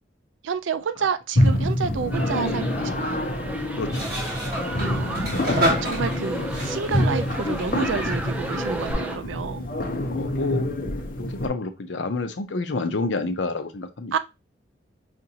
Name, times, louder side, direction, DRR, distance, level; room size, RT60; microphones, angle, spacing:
voice 1, 0.4-3.2 4.8-9.7 14.1-14.2, right 6 dB, 90° right, 0.4 m, -30 dB
sound 1, 1.3-11.5, left 1 dB, 50° left, 0.7 m, -26 dB
sound 2, 2.1-9.2, right 1 dB, 10° right, 0.5 m, -33 dB
sound 3, 3.9-8.9, right 1 dB, 55° right, 1.3 m, -30 dB
voice 2, 10.1-10.7 11.3-14.1, left 3 dB, 80° left, 0.6 m, -28 dB
5.0 x 2.5 x 2.8 m
head